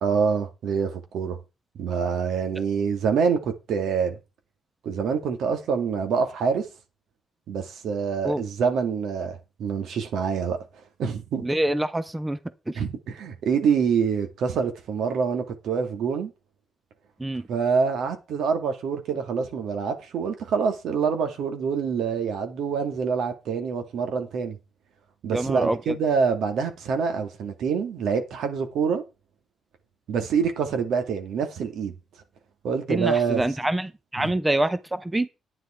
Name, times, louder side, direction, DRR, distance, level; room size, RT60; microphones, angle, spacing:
voice 1, 0.0-1.4 1.8-4.2 4.8-6.7 7.5-10.6 11.0-11.4 12.8-16.3 17.5-24.6 25.2-29.0 30.1-31.9 32.6-33.4 34.2-34.3, right 6 dB, 80° right, 2.4 m, -26 dB
voice 2, 11.4-12.4 12.7-12.8 17.2-17.5 25.3-25.8 32.9-35.3, right 1 dB, 10° right, 0.7 m, -26 dB
10.0 x 9.6 x 4.5 m
cardioid pair, 130°, 0 cm